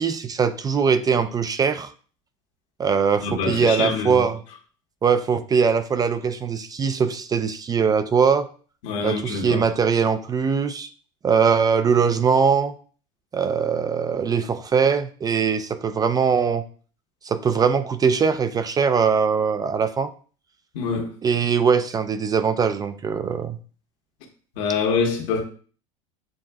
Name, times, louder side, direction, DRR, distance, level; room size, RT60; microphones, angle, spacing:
voice 1, 0.0-1.9 2.8-4.4 5.0-8.5 9.0-10.9 11.2-12.7 13.3-16.7 17.2-20.1 21.2-23.6, right 6 dB, 25° right, 0.4 m, -21 dB
voice 2, 3.2-4.2 8.8-9.6 20.7-21.1 24.5-25.4, left 5 dB, 70° left, 1.3 m, -25 dB
7.5 x 2.5 x 2.3 m
supercardioid pair, 95°, 16 cm